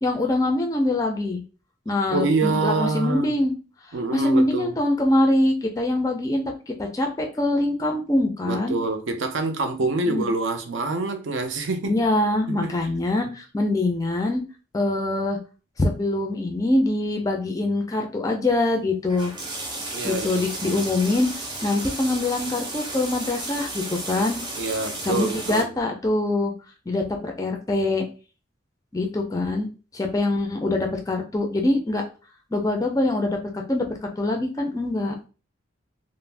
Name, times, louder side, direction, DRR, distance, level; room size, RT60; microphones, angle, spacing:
voice 1, 0.0-1.4 1.9-3.5 4.1-8.8 10.1-10.3 11.8-14.4 14.7-15.4 15.8-19.3 20.0-24.4 25.0-26.5 26.9-28.1 28.9-29.7 29.9-32.0 32.5-35.3, left 2 dB, 15° left, 0.3 m, -24 dB
voice 2, 1.9-3.4 3.9-4.7 8.4-12.0 12.5-12.7 19.9-21.0 24.6-25.7, right 3 dB, 75° right, 0.5 m, -26 dB
sound 1, 19.1-25.6, right 2 dB, 25° right, 0.6 m, -33 dB
2.4 x 2.0 x 3.2 m
head